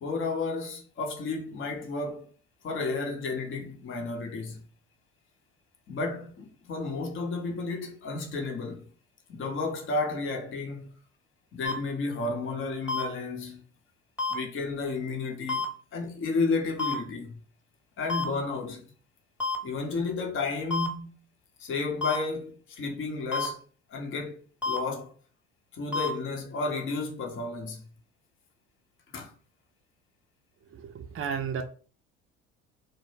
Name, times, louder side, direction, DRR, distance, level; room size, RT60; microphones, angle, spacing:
voice 1, 0.0-2.3 2.6-4.6 5.9-8.9 9.3-10.9 11.5-13.6 14.3-15.6 15.9-17.4 18.0-18.8 19.6-21.1 21.6-23.6 23.9-24.4 24.6-25.1 25.7-27.9 29.1-29.3, left 3 dB, 35° left, 0.7 m, -32 dB
sound 1, 11.6-11.7 12.9-13.0 14.2-14.3 15.5-15.6 16.8-16.9 18.1-18.2 19.4-19.6 20.7-20.9 22.0-22.2 23.3-23.5 24.6-24.8 25.9-26.1, left 4 dB, 5° right, 0.9 m, -28 dB
voice 2, 30.7-31.6, right 7 dB, 35° right, 0.5 m, -33 dB
2.1 x 2.0 x 3.2 m
hypercardioid pair, 60°, 36 cm